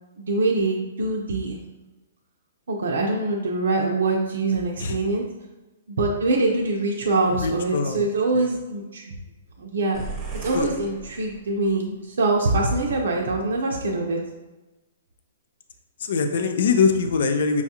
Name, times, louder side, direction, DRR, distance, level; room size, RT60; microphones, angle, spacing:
voice 1, 0.2-1.6 2.7-5.2 5.9-9.1 9.6-10.0 10.4-14.2, right 2 dB, 80° right, -1 dB, 0.6 m, -24 dB
voice 2, 7.4-8.1 8.3-8.5 10.5-10.7 16.0-17.6, left 5 dB, 65° left, 7 dB, 0.4 m, -23 dB
sound 1, 9.9-11.8, right 3 dB, 20° right, 0.9 m, -36 dB
5.8 x 2.4 x 2.8 m, 1.1 s
hypercardioid pair, 150°, 0 cm